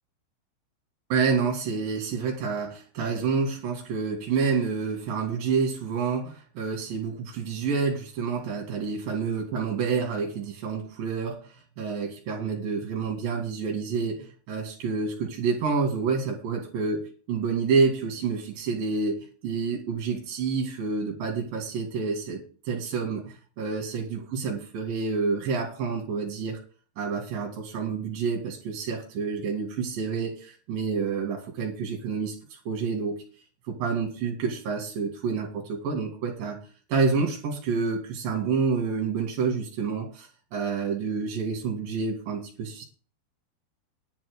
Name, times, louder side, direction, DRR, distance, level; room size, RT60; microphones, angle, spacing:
voice 1, 1.1-17.0 17.3-26.6 27.0-33.2 33.7-36.6 36.9-42.8, right 5 dB, 55° right, 1 dB, 3.5 m, -28 dB
11.0 x 6.1 x 8.0 m, 0.39 s
omnidirectional pair, 5.5 m